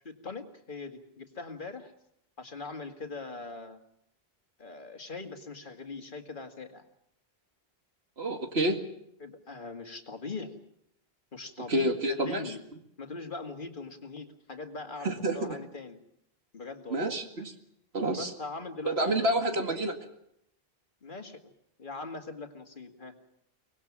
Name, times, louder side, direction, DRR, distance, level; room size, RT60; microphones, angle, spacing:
voice 1, 0.0-1.9 2.4-3.8 4.6-6.9 9.2-10.6 11.3-12.6 13.0-16.0 16.5-17.1 18.1-19.7 21.0-21.4 21.8-23.2, left 3 dB, 50° left, 5 dB, 2.2 m, -41 dB
voice 2, 8.2-8.8 11.7-12.5 15.0-15.6 16.9-17.5 17.9-18.3 18.8-20.0, right 1 dB, 75° right, 5 dB, 2.4 m, -28 dB
24.0 x 19.5 x 7.3 m, 0.75 s
omnidirectional pair, 1.1 m